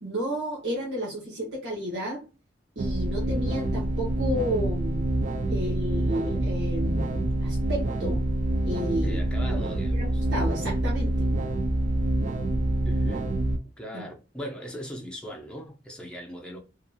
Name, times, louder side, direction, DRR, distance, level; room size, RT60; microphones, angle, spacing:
voice 1, 0.0-2.2 2.8-5.1 5.5-8.2 8.6-9.2 9.9-11.3 13.9-14.0, equal, 65° right, 0.9 m, -32 dB
sound 1, 2.8-13.6, right 1 dB, 40° right, 0.3 m, -26 dB
voice 2, 9.0-10.2 12.9-13.3 13.8-16.6, equal, 5° left, 0.7 m, -39 dB
2.8 x 2.5 x 2.2 m
head